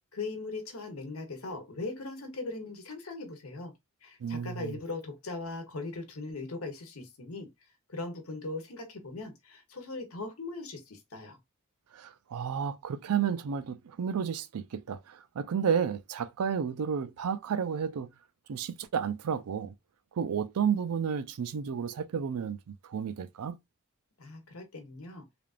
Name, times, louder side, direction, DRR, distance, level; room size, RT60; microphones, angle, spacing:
voice 1, 0.1-3.7 4.0-7.5 7.9-11.4 24.2-25.2, left 3 dB, 75° left, 1.0 m, -39 dB
voice 2, 4.2-4.7 11.9-18.1 18.5-19.7 20.2-23.6, right 7 dB, 90° right, 0.4 m, -32 dB
3.4 x 2.4 x 2.4 m
head